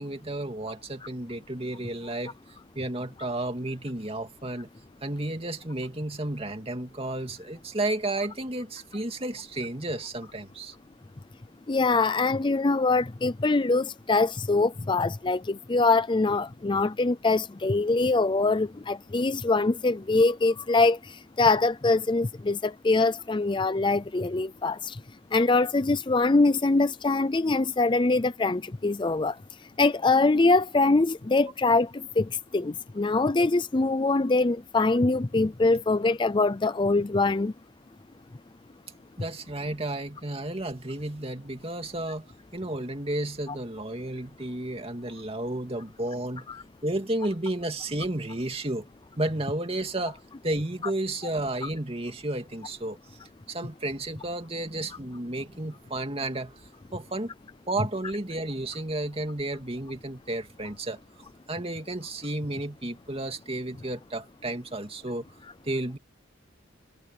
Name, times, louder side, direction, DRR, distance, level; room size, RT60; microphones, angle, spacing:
voice 1, 0.0-2.3 2.8-4.7 5.0-10.7 39.2-42.3 42.5-46.5 46.8-48.9 49.2-50.2 50.4-53.0 53.5-56.5 56.9-57.3 57.7-61.0 61.5-65.3 65.6-66.0, right 1 dB, 30° right, 2.5 m, -32 dB
voice 2, 11.7-21.0 21.4-25.0 25.3-29.3 29.8-37.5 46.5-46.6, left 3 dB, 25° left, 0.5 m, -23 dB
head